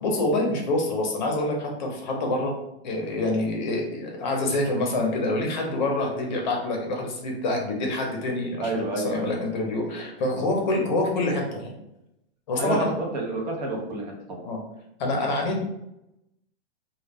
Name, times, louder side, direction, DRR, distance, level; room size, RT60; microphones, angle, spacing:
voice 1, 0.0-2.6 2.8-11.7 12.5-12.9 14.4-14.6 15.0-15.6, left 2 dB, 45° left, 0 dB, 0.6 m, -26 dB
voice 2, 8.6-9.5 10.0-10.1 10.4-10.6 12.6-14.4, right 2 dB, 40° right, 0 dB, 0.6 m, -30 dB
2.2 x 2.1 x 3.3 m, 0.86 s
hypercardioid pair, 165°, 32 cm